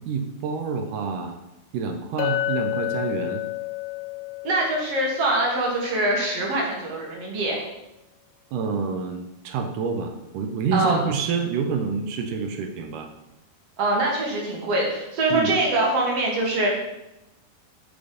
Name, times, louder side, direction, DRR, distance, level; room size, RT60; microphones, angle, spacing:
voice 1, 0.0-1.4 1.7-3.4 8.5-13.1 15.3-15.5, right 5 dB, 80° right, 6 dB, 2.0 m, -28 dB
Chink clink, 2.2-6.4, left 14 dB, 85° left, 2.3 m, -31 dB
voice 2, 4.4-7.6 10.7-11.0 13.8-16.7, right 2 dB, 55° right, -2 dB, 2.0 m, -23 dB
6.9 x 5.2 x 5.1 m, 0.92 s
omnidirectional pair, 4.2 m